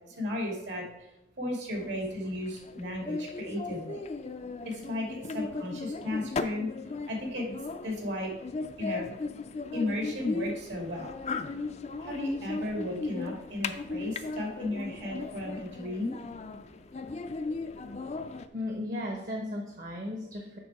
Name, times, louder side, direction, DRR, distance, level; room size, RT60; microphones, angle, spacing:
voice 1, 0.1-0.8 1.4-4.0 4.6-6.7 7.1-7.5 7.8-8.3 8.8-9.1 9.7-11.1 12.0-16.1, left 1 dB, 80° right, 0 dB, 2.2 m, -34 dB
sound 1, 1.7-18.5, left 3 dB, 35° left, 0.4 m, -37 dB
voice 2, 18.5-20.6, left 1 dB, 50° right, 1 dB, 0.9 m, -35 dB
7.0 x 5.6 x 4.7 m, 0.90 s
head